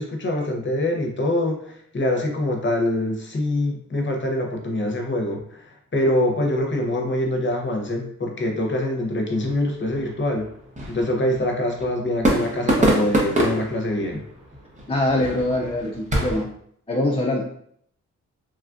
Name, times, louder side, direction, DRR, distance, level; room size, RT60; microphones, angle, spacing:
voice 1, 0.0-10.5 10.9-14.2, left 1 dB, 40° left, 1 dB, 0.8 m, -24 dB
sound 1, 9.3-16.4, right 1 dB, 25° right, 0.8 m, -26 dB
voice 2, 14.9-16.5 16.9-17.4, left 1 dB, 20° left, -1 dB, 0.4 m, -23 dB
3.1 x 2.4 x 2.4 m, 0.67 s
cardioid pair, 75°, 30 cm